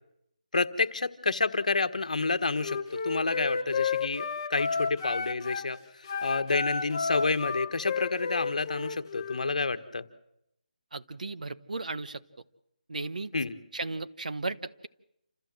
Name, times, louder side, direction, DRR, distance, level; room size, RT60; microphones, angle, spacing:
voice 1, 0.5-4.2 4.5-5.8 6.2-10.0 13.3-13.6, left 3 dB, 65° left, 10 dB, 1.5 m, -29 dB
Wind instrument woodwind instrument, 2.6-5.7 6.0-9.5, left 5 dB, 25° left, 1.1 m, -32 dB
voice 2, 10.9-12.2 12.9-13.3 13.7-14.9, right 3 dB, 70° right, 11 dB, 1.2 m, -35 dB
28.0 x 14.5 x 7.7 m, 0.80 s
figure-of-eight pair, 175°, 4 cm